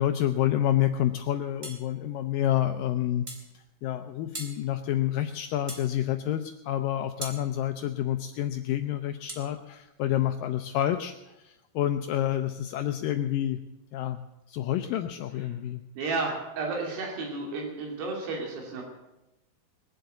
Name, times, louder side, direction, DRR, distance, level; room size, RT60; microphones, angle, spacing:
voice 1, 0.0-3.3 3.5-13.6 13.9-15.8, left 12 dB, 80° left, 8 dB, 2.0 m, -28 dB
sound 1, 1.6-1.9 3.3-3.5 4.3-4.6 5.7-5.9 7.2-7.4 9.3-9.5, right 2 dB, 25° right, 1.5 m, -39 dB
voice 2, 16.0-18.8, right 3 dB, 85° right, -1 dB, 4.6 m, -32 dB
21.0 x 7.8 x 8.3 m, 0.95 s
omnidirectional pair, 4.6 m